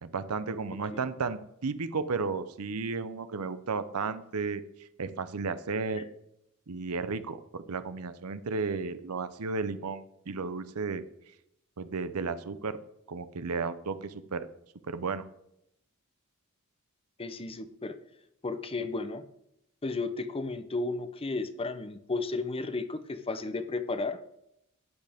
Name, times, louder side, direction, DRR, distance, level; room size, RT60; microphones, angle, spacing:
voice 1, 0.0-4.6 5.0-6.0 6.7-11.0 11.8-12.8 13.1-14.5 14.9-15.2, right 4 dB, 80° right, 13 dB, 0.7 m, -33 dB
voice 2, 17.2-18.0 18.4-19.3 19.8-24.2, left 3 dB, 25° left, 11 dB, 0.6 m, -33 dB
12.5 x 9.2 x 3.5 m, 0.79 s
head